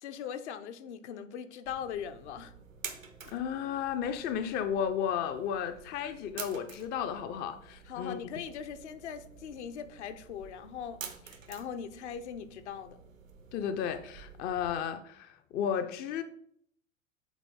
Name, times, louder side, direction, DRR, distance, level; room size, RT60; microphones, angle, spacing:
voice 1, 0.0-2.5 7.9-13.0, left 8 dB, 60° left, 0.8 m, -40 dB
sound 1, 1.6-14.7, right 6 dB, 90° right, 0.9 m, -49 dB
voice 2, 3.2-8.2 13.5-16.2, left 8 dB, 25° left, 0.4 m, -33 dB
8.0 x 3.9 x 3.7 m
figure-of-eight pair, 85°, 38 cm